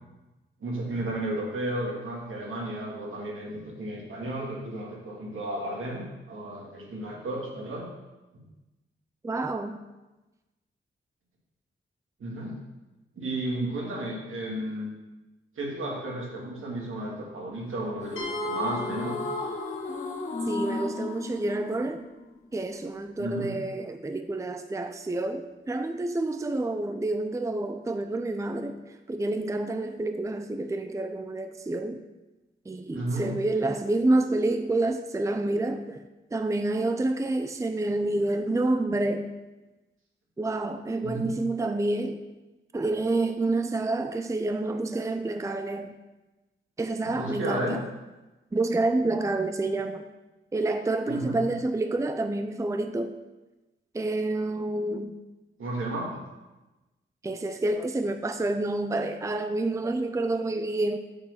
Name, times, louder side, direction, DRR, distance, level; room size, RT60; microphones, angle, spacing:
voice 1, 0.6-7.9 8.3-8.4 12.2-12.6 13.2-14.9 15.6-19.2 23.2-23.6 32.9-33.3 41.0-41.3 47.0-47.7 51.1-51.4 55.6-56.2, right 1 dB, 80° right, -2 dB, 2.2 m, -33 dB
voice 2, 9.2-9.8 20.5-22.0 22.5-32.0 32.7-36.0 36.3-39.3 40.4-42.3 42.7-45.9 46.8-47.8 48.5-50.1 50.5-53.2 53.9-55.1 57.2-61.0, right 2 dB, 15° right, 7 dB, 0.5 m, -28 dB
sound 1, 18.0-22.5, left 2 dB, 35° left, 2.0 m, -33 dB
sound 2, 18.2-21.8, left 7 dB, 85° left, 1.4 m, -43 dB
6.5 x 6.1 x 5.8 m, 1.1 s
cardioid pair, 80°, 21 cm